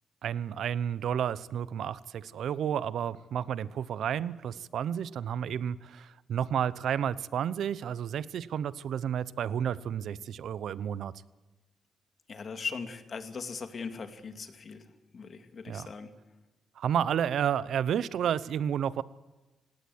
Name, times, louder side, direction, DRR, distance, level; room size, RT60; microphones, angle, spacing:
voice 1, 0.2-11.1 15.7-15.9 16.8-19.0, right 9 dB, 80° right, 18 dB, 0.8 m, -31 dB
voice 2, 12.3-14.8 15.1-16.1, left 5 dB, 55° left, 8 dB, 2.4 m, -39 dB
18.0 x 18.0 x 8.0 m, 1.2 s
cardioid pair, 75°, 0 cm